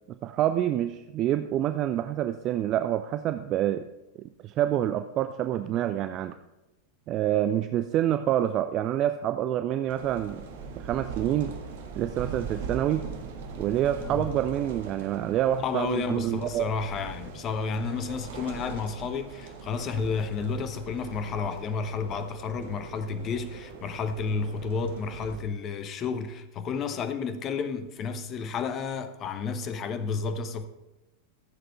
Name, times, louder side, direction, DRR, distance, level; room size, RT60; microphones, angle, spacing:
voice 1, 0.1-3.9 4.2-6.3 7.1-10.4 10.8-11.5 12.0-13.1 13.6-16.6, right 11 dB, 35° right, 0.5 m, -27 dB
sound 1, 9.9-25.4, right 5 dB, 55° right, 1.6 m, -41 dB
voice 2, 15.6-30.7, left 5 dB, 30° left, 1.0 m, -31 dB
15.0 x 7.7 x 4.4 m
figure-of-eight pair, 90°, 0 cm